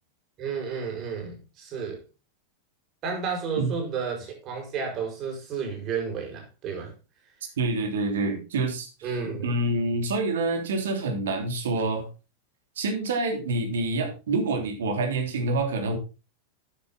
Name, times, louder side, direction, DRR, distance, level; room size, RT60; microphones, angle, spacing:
voice 1, 0.4-2.0 3.0-6.9 9.0-9.6, right 5 dB, 35° right, 6.4 m, -32 dB
voice 2, 7.6-9.1 9.4-12.1 12.8-16.0, right 2 dB, 60° right, 3.2 m, -27 dB
12.0 x 9.7 x 4.0 m
figure-of-eight pair, 90°, 0 cm